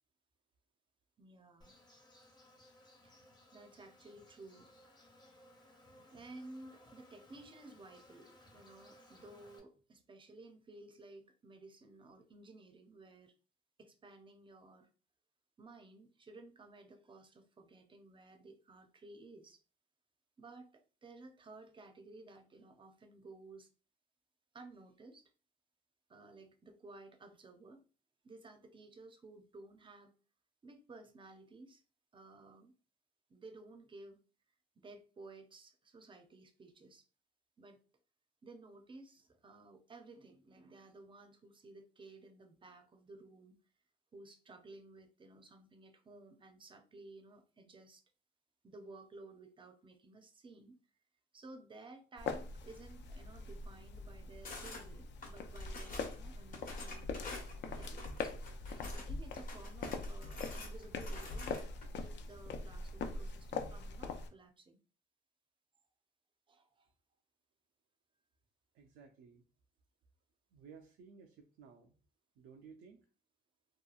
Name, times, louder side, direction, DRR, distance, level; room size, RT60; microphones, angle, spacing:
voice 1, 1.2-1.7 3.0-3.2 3.5-4.7 6.1-13.3 13.8-14.9 15.6-19.6 20.4-23.7 24.5-25.3 26.1-27.8 28.2-30.1 30.6-31.8 32.1-32.7 33.3-34.2 34.8-37.1 37.6-37.8 38.4-43.6 44.1-48.0 48.6-50.7 51.3-57.1 57.6-58.3 58.8-64.8 66.5-66.9, right 2 dB, 25° right, 6 dB, 0.5 m, -55 dB
Insect, 1.6-9.6, left 1 dB, 20° left, 0.7 m, -62 dB
sound 1, 52.2-64.3, left 3 dB, 65° left, 0.5 m, -42 dB
sound 2, 54.4-54.8 55.2-56.2 56.5-59.1 59.4-61.9, left 3 dB, 45° left, 1.0 m, -49 dB
voice 2, 68.7-69.4 70.5-72.0 72.4-73.0, right 6 dB, 80° right, 3 dB, 0.4 m, -57 dB
2.9 x 2.3 x 2.3 m, 0.36 s
cardioid pair, 90°, 20 cm